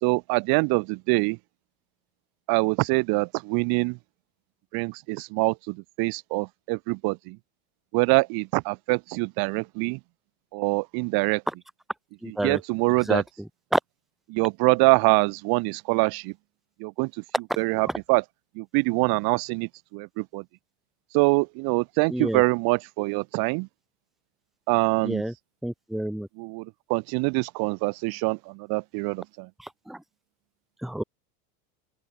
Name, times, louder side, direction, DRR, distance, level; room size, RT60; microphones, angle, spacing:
voice 1, 0.0-1.4 2.5-4.0 4.7-7.4 7.9-10.0 10.5-11.4 12.3-13.2 14.3-16.3 16.8-17.1 17.6-18.2 18.6-20.4 21.1-23.7 24.7-25.2 26.4-26.6 26.9-29.5, right 29 dB, 55° right, 1.2 m, -24 dB
voice 2, 12.2-12.6 13.0-13.2 13.7-13.8 22.1-22.4 25.0-25.3 25.6-26.3 29.9-30.0 30.8-31.0, right 1 dB, ahead, 1.2 m, -27 dB
open air
supercardioid pair, 115°, 45 cm